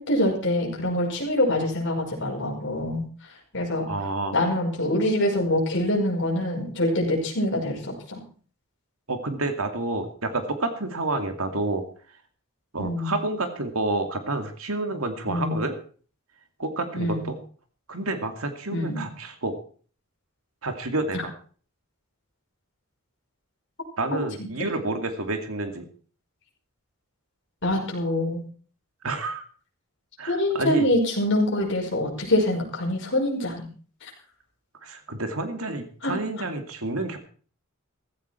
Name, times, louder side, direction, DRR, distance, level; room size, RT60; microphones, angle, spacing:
voice 1, 0.0-3.0 3.5-3.9 4.3-8.2 12.8-13.1 15.3-15.5 16.9-17.2 18.7-19.0 24.1-24.2 27.6-28.4 30.3-33.7 36.0-36.2, left 1 dB, 55° left, -2 dB, 5.5 m, -25 dB
voice 2, 3.9-4.3 9.1-11.8 12.7-15.8 16.6-17.4 17.9-19.5 20.6-21.3 24.0-25.9 29.0-29.5 30.2-30.9 34.8-37.2, right 2 dB, 75° right, 6 dB, 2.4 m, -29 dB
15.0 x 14.5 x 4.5 m, 0.43 s
head